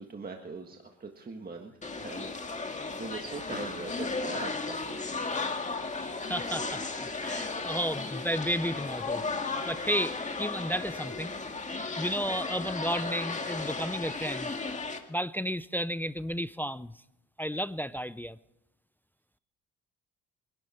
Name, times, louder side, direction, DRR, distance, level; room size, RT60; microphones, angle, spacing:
voice 1, 0.0-5.2, right 4 dB, 30° right, 1.6 m, -42 dB
sound 1, 1.8-15.0, left 3 dB, 25° left, 1.9 m, -35 dB
voice 2, 6.2-9.2 9.7-11.3 12.0-14.5 15.1-17.0 17.4-18.4, equal, 5° left, 0.4 m, -33 dB
24.5 x 11.5 x 4.4 m
cardioid pair, 90°, 30 cm